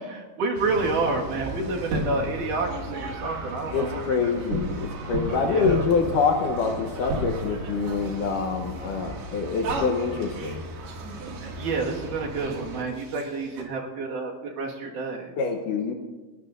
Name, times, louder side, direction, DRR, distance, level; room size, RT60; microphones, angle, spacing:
voice 1, 0.0-4.4 5.3-5.8 11.4-15.3, right 3 dB, 60° right, -1 dB, 3.0 m, -29 dB
sound 1, 0.6-13.6, right 1 dB, 85° right, 4.2 m, -34 dB
voice 2, 3.7-10.6 15.4-15.9, left 5 dB, 70° left, 3 dB, 2.1 m, -26 dB
29.5 x 12.5 x 2.5 m, 1.3 s
omnidirectional pair, 4.4 m